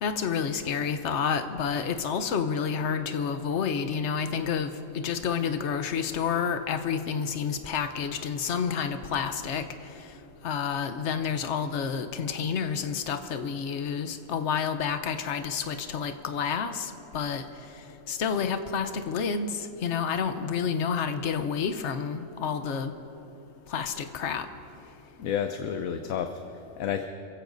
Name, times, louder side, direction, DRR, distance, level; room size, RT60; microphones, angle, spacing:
voice 1, 0.0-4.7 5.0-9.6 10.4-17.4 18.1-22.9 23.7-24.5, left 6 dB, 60° left, 8 dB, 1.1 m, -29 dB
voice 2, 25.2-27.1, left 8 dB, 90° left, 6 dB, 1.1 m, -31 dB
27.0 x 15.5 x 2.7 m, 2.7 s
omnidirectional pair, 1.4 m